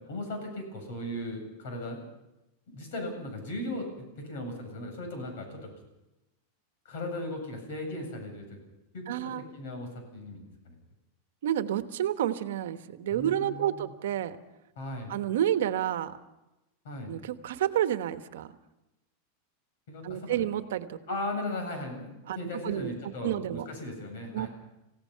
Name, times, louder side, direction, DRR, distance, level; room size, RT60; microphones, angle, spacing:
voice 1, 0.1-2.0 2.7-5.7 6.8-8.6 8.9-10.7 13.1-13.9 14.8-15.2 16.8-17.2 19.9-20.4 21.1-24.5, left 1 dB, 60° left, 4 dB, 8.0 m, -37 dB
voice 2, 9.1-9.4 11.4-14.4 15.1-16.2 17.1-18.5 20.0-21.0 22.3-22.4 22.6-22.9 23.2-23.7 24.3-24.5, right 11 dB, 75° right, 10 dB, 1.2 m, -29 dB
27.5 x 17.0 x 5.8 m, 0.96 s
supercardioid pair, 175°, 0 cm